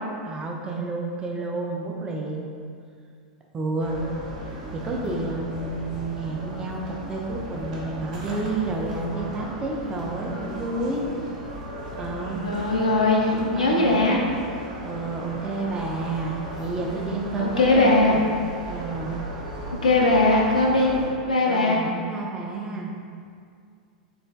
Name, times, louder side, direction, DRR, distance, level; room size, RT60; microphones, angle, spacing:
voice 1, 0.2-2.5 3.5-4.0 4.7-11.0 12.0-12.4 13.5-14.0 14.8-18.2 18.6-19.1 21.5-22.9, right 3 dB, 20° right, 0 dB, 0.4 m, -30 dB
sound 1, 3.8-21.1, right 1 dB, 55° right, 0.7 m, -36 dB
voice 2, 12.4-14.2 17.4-18.2 19.8-20.9 21.2-21.8, left 2 dB, 75° left, -2 dB, 0.4 m, -20 dB
3.2 x 2.4 x 2.2 m, 2.3 s
figure-of-eight pair, 90°, 4 cm